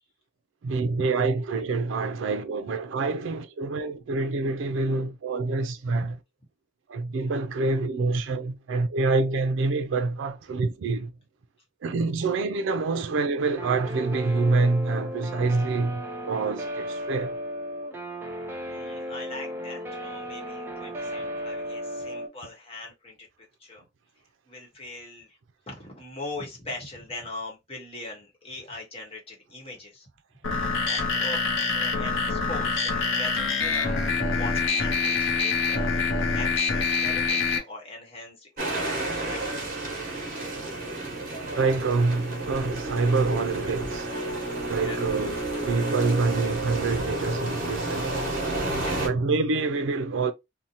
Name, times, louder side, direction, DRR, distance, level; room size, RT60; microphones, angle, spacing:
voice 1, 0.6-6.2 6.9-11.1 11.8-17.4 41.5-44.2 44.7-45.3 45.6-48.4 49.0-50.3, right 3 dB, 80° right, 0.4 m, -26 dB
Guitar, 13.6-22.3, equal, 10° right, 0.5 m, -35 dB
voice 2, 18.7-23.8 24.5-25.4 25.7-30.1 30.4-30.5 30.8-35.9 36.3-39.4 44.8-45.0 48.6-49.1, left 2 dB, 30° left, 1.0 m, -41 dB
sound 1, 30.4-37.6, left 4 dB, 85° left, 0.6 m, -25 dB
sound 2, 38.6-49.1, right 2 dB, 45° right, 0.9 m, -31 dB
2.7 x 2.1 x 2.8 m
head